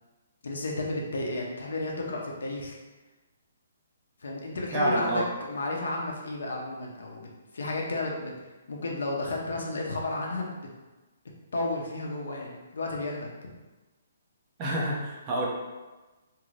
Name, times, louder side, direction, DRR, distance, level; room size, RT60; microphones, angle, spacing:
voice 1, 0.4-2.8 4.2-8.3 8.7-10.7 11.5-13.3, left 2 dB, 80° left, -1 dB, 0.7 m, -32 dB
voice 2, 4.7-5.3 14.6-15.5, right 1 dB, 15° right, -4 dB, 0.4 m, -27 dB
2.6 x 2.5 x 3.1 m, 1.2 s
hypercardioid pair, 180°, 0 cm